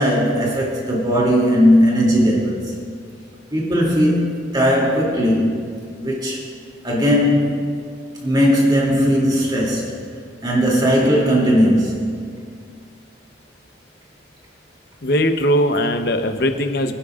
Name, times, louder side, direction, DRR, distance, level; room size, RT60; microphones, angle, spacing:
voice 1, 0.0-2.7 3.5-4.3 4.5-5.6 6.0-6.4 6.8-7.6 8.2-9.9 10.4-12.3, equal, 25° right, -4 dB, 2.5 m, -17 dB
voice 2, 15.0-16.9, equal, 55° left, 7 dB, 0.8 m, -19 dB
24.5 x 10.0 x 2.4 m, 2.2 s
head